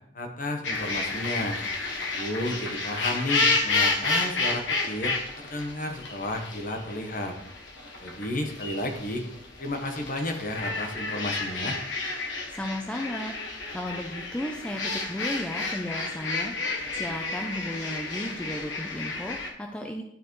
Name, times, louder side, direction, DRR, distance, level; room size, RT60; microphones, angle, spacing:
voice 1, 0.1-1.6 2.1-7.4 8.0-9.3 9.6-11.8, left 1 dB, 45° left, 4 dB, 1.1 m, -32 dB
sound 1, 0.6-19.5, left 3 dB, 75° left, 1.2 m, -31 dB
voice 2, 12.5-20.0, left 1 dB, 5° left, 2 dB, 0.5 m, -35 dB
12.0 x 4.8 x 3.1 m, 0.74 s
head